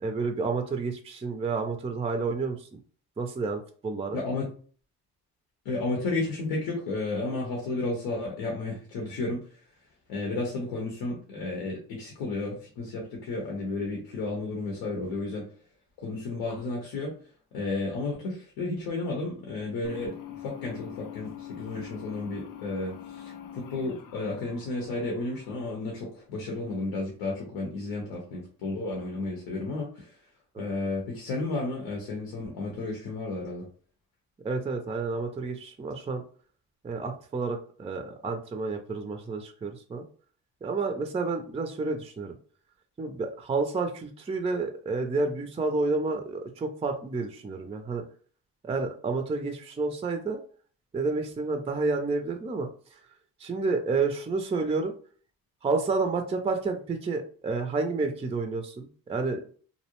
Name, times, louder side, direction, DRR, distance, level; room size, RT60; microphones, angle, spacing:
voice 1, 0.0-2.7 3.2-4.2 30.5-30.8 34.4-36.2 36.8-40.0 40.6-42.3 43.0-48.0 48.6-50.4 50.9-52.7 53.4-54.9 55.6-59.4, right 3 dB, 15° right, 6 dB, 0.4 m, -30 dB
voice 2, 4.1-4.5 5.6-9.4 10.1-15.5 16.0-17.1 17.5-30.2 30.6-33.7, left 2 dB, 90° left, 0 dB, 0.8 m, -32 dB
sound 1, 19.8-26.2, left 11 dB, 60° left, 0.5 m, -44 dB
2.5 x 2.0 x 2.9 m, 0.44 s
supercardioid pair, 60°, 37 cm